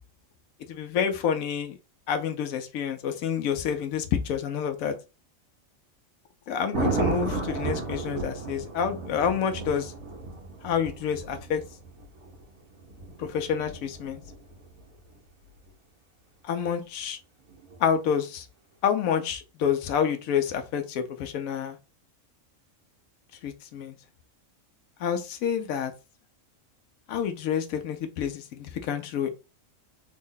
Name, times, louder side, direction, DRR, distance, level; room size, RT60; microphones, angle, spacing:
voice 1, 0.7-1.7 2.1-4.9 6.5-9.9 10.6-11.6 13.2-14.2 16.5-17.2 17.8-18.5 18.8-21.8 23.4-23.9 25.0-25.9 27.1-29.3, left 8 dB, 85° left, 7 dB, 1.0 m, -28 dB
Thunder, 6.7-14.8 17.5-17.8, right 3 dB, 85° right, 1.4 m, -33 dB
3.4 x 2.1 x 3.7 m, 0.29 s
omnidirectional pair, 1.4 m